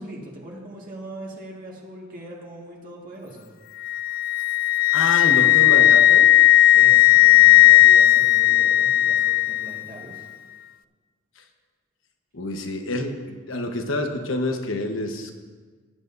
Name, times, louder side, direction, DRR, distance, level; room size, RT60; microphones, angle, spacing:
voice 1, 0.0-3.5 6.7-10.3, right 1 dB, 45° right, -3 dB, 1.9 m, -40 dB
Wind instrument woodwind instrument, 3.8-9.8, left 15 dB, 45° left, 0.3 m, -15 dB
voice 2, 4.9-6.3 12.3-15.3, left 2 dB, 75° left, 4 dB, 1.1 m, -27 dB
18.5 x 10.0 x 2.7 m, 1.5 s
head